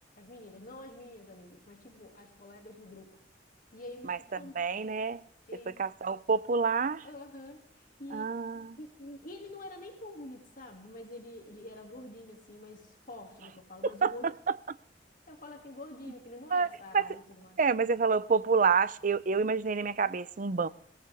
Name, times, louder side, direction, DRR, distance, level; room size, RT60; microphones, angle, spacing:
voice 1, 0.2-3.2 3.7-4.6 5.5-5.8 7.0-8.3 8.8-14.3 15.3-17.6, left 1 dB, 50° left, 2.6 m, -47 dB
voice 2, 4.5-5.2 5.8-7.1 8.1-8.8 13.8-14.1 14.7-14.8 16.5-16.7 16.9-17.1 17.6-20.7, right 5 dB, 45° right, 0.6 m, -28 dB
22.5 x 17.0 x 3.6 m
head